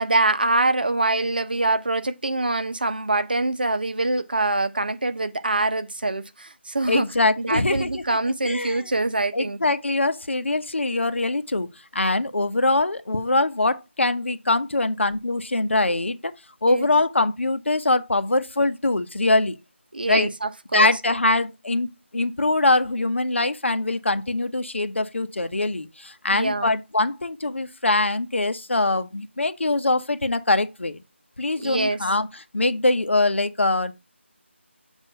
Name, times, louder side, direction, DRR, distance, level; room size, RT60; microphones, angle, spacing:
voice 1, 0.0-7.0 7.4-9.6 16.7-16.9 19.9-20.9 26.3-26.7 31.6-32.0, right 2 dB, 45° right, 0.8 m, -24 dB
voice 2, 6.9-8.0 8.4-8.8 9.3-16.3 16.6-19.6 20.1-20.3 20.7-21.9 22.1-31.0 31.4-32.3 32.5-33.9, left 2 dB, 65° left, 0.9 m, -23 dB
7.4 x 2.6 x 5.7 m
figure-of-eight pair, 180°, 7 cm